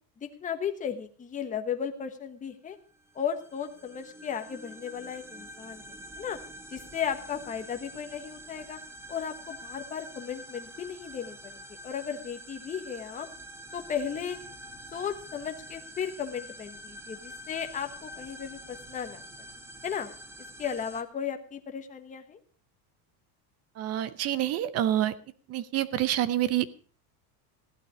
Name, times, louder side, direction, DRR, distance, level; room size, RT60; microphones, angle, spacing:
voice 1, 0.2-2.8 3.1-6.4 6.7-8.8 9.1-13.3 13.7-14.4 14.9-19.2 19.8-20.1 20.6-22.4, left 8 dB, 15° left, 6 dB, 1.2 m, -35 dB
sound 1, 2.9-21.0, right 1 dB, 5° right, 0.9 m, -46 dB
voice 2, 23.8-25.1 25.5-26.7, right 12 dB, 30° right, 16 dB, 0.7 m, -27 dB
15.5 x 11.5 x 5.0 m, 0.41 s
cardioid pair, 160°, 50 cm